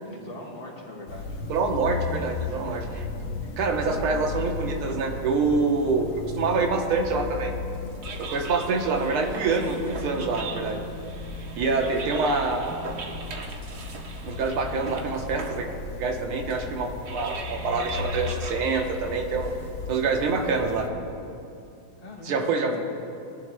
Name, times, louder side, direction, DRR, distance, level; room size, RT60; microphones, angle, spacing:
voice 1, 0.0-1.4 2.4-2.8 22.0-22.8, left 2 dB, 45° left, -3 dB, 1.9 m, -41 dB
sound 1, 1.1-20.9, left 3 dB, 80° left, 1.7 m, -36 dB
voice 2, 1.5-3.1 3.6-7.5 8.2-10.9 11.6-12.8 14.2-15.7 16.0-19.5 19.9-20.9 22.2-22.8, right 4 dB, 80° right, 2 dB, 1.9 m, -26 dB
sound 2, 7.7-20.0, right 3 dB, 55° right, 1.4 m, -40 dB
20.5 x 11.0 x 2.2 m, 2.6 s
omnidirectional pair, 2.3 m